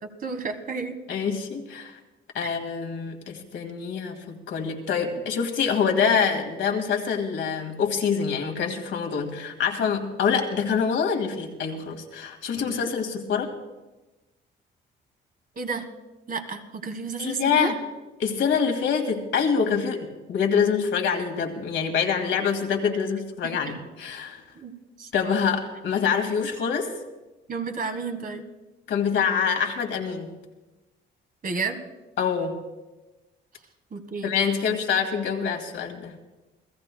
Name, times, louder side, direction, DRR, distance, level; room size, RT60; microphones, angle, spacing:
voice 1, 0.0-1.0 12.6-12.9 15.5-15.8 16.3-17.7 23.4-23.5 24.5-24.7 25.0-25.1 27.5-28.4 31.4-31.8 33.9-34.8, right 4 dB, 45° right, 6 dB, 1.6 m, -32 dB
voice 2, 1.1-2.0 2.3-13.5 17.2-17.8 18.2-24.4 25.1-26.9 28.9-30.3 32.2-32.6 34.2-36.2, left 6 dB, 75° left, 3 dB, 2.1 m, -25 dB
28.5 x 16.0 x 2.2 m, 1.1 s
cardioid pair, 90°, 20 cm